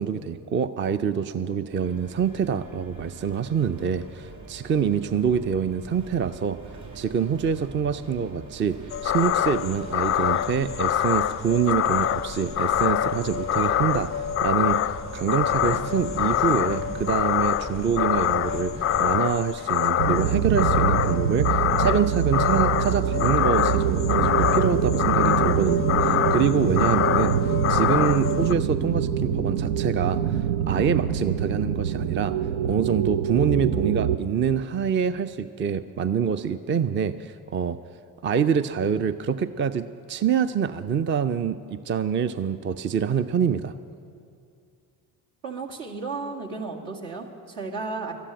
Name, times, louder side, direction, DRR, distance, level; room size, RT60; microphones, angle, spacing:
voice 1, 0.0-6.6 6.9-8.8 9.0-32.4 32.6-37.8 38.2-43.7, right 7 dB, 30° right, 12 dB, 0.5 m, -26 dB
sound 1, 1.7-19.2, right 3 dB, 50° right, 4.4 m, -40 dB
sound 2, 8.9-28.5, left 10 dB, 30° left, 0.4 m, -25 dB
sound 3, 20.0-34.2, right 8 dB, 85° right, 0.6 m, -25 dB
voice 2, 45.4-48.1, right 4 dB, 70° right, -1 dB, 2.1 m, -33 dB
13.0 x 9.9 x 8.9 m, 2.4 s
hypercardioid pair, 55°, 43 cm